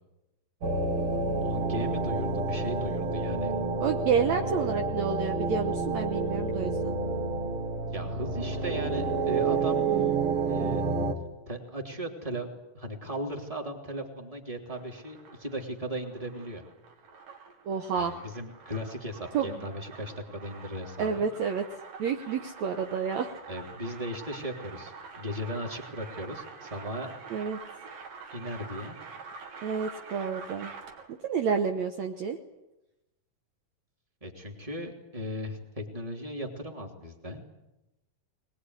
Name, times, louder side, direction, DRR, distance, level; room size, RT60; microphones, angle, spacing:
sound 1, 0.6-11.1, right 3 dB, 45° right, 2.4 m, -29 dB
voice 1, 1.4-3.5 7.9-9.8 10.4-10.9 11.5-12.5 12.7-16.6 18.0-21.2 23.5-27.1 28.3-29.0 34.2-37.4, equal, 10° right, 1 dB, 2.9 m, -37 dB
voice 2, 3.8-6.9 9.9-10.1 17.7-18.1 19.3-19.6 21.0-21.7 22.0-23.3 27.3-27.6 29.6-30.7 31.2-32.4, right 6 dB, 65° right, 5 dB, 2.2 m, -29 dB
sound 2, 14.5-31.2, right 5 dB, 85° right, 4.2 m, -46 dB
21.5 x 21.0 x 9.8 m, 0.97 s
omnidirectional pair, 3.9 m